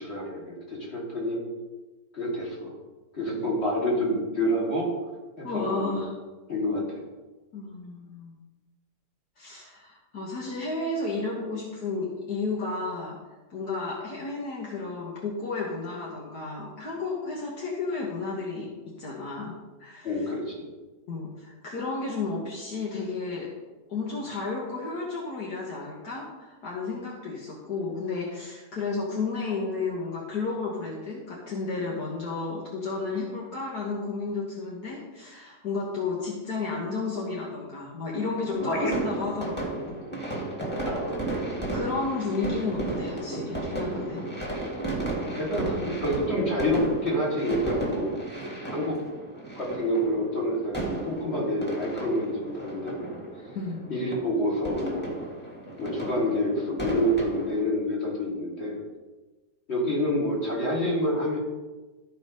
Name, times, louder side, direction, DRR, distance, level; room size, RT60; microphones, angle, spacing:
voice 1, 0.0-1.4 2.1-2.7 3.1-4.9 5.4-6.0 6.5-7.0 20.0-20.7 38.7-38.9 40.8-41.2 45.3-48.1 48.7-49.0 49.5-53.2 53.9-55.2 55.8-58.8 59.7-61.4, equal, 40° left, -4 dB, 3.1 m, -28 dB
voice 2, 5.4-6.1 7.5-8.3 9.4-13.2 13.5-18.7 19.0-20.3 21.1-23.5 23.9-40.0 40.3-40.4 41.7-44.3 53.6-53.9, left 3 dB, 70° left, -3 dB, 1.9 m, -32 dB
sound 1, 38.5-57.6, right 2 dB, 5° left, 1.9 m, -34 dB
14.0 x 4.7 x 5.2 m, 1.2 s
omnidirectional pair, 1.8 m